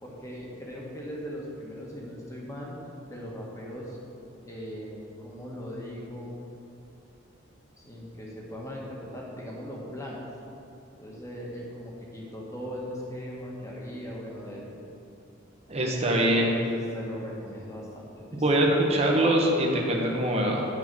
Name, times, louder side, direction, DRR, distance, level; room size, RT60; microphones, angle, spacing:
voice 1, 0.0-2.7 3.1-4.0 4.4-6.4 7.8-10.2 11.0-14.8 16.1-18.7, equal, 15° left, -3 dB, 1.6 m, -39 dB
voice 2, 15.7-16.5 18.3-20.6, right 1 dB, 30° right, -1 dB, 1.1 m, -23 dB
9.6 x 5.6 x 6.1 m, 2.6 s
head